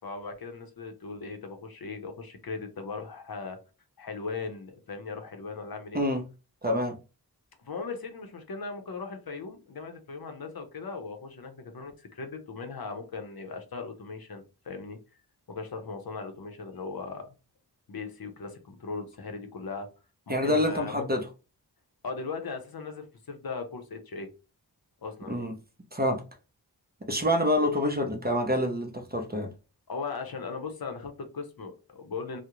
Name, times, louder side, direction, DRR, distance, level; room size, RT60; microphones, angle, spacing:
voice 1, 0.0-3.6 4.0-6.0 7.6-15.0 15.5-17.3 17.9-19.9 20.3-21.2 22.0-24.3 25.0-25.5 29.9-32.4, left 4 dB, 60° left, 0.7 m, -38 dB
voice 2, 6.6-7.0 20.3-21.2 25.3-25.6 25.9-26.2 27.0-29.5, equal, 25° right, 0.5 m, -27 dB
2.4 x 2.0 x 2.9 m
cardioid pair, 40°, 42 cm